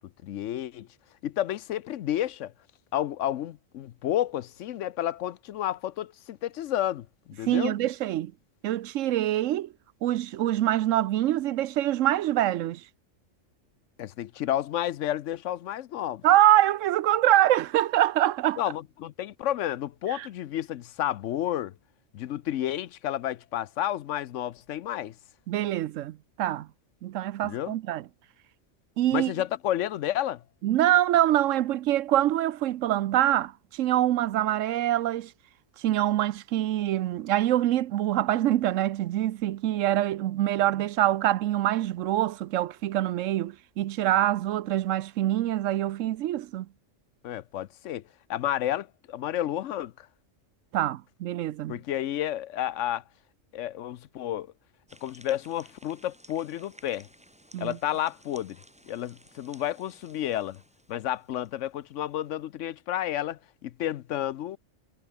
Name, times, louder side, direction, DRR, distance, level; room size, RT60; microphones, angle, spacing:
voice 1, 0.2-0.9 1.2-2.5 2.9-7.8 14.0-16.2 18.6-21.7 22.1-25.1 27.4-27.8 29.1-30.4 47.2-48.0 48.3-50.1 51.7-53.0 53.5-54.5 55.0-57.1 57.6-58.6 58.9-60.6 60.9-64.6, left 12 dB, 75° left, 0.9 m, -31 dB
voice 2, 7.4-8.3 8.6-9.7 10.0-12.8 16.2-18.6 20.1-20.3 25.5-26.7 27.0-28.0 29.0-29.3 30.6-35.3 35.8-46.7 50.7-51.8 57.5-57.8, right 13 dB, 80° right, 1.0 m, -25 dB
sound 1, 54.9-61.7, right 1 dB, 5° right, 1.5 m, -55 dB
omnidirectional pair, 1.3 m